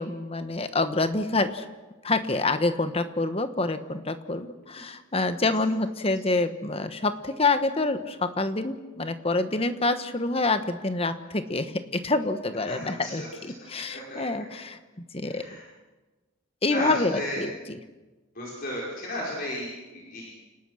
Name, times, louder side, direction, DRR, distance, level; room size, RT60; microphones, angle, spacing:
voice 1, 0.0-1.7 2.0-14.8 15.1-15.4 16.6-17.8, left 2 dB, 30° left, 10 dB, 1.2 m, -27 dB
voice 2, 12.7-13.3 13.6-14.2 15.3-15.6 16.7-17.5 18.3-20.4, left 1 dB, 45° left, -4 dB, 4.9 m, -34 dB
29.5 x 19.0 x 6.4 m, 1.2 s
head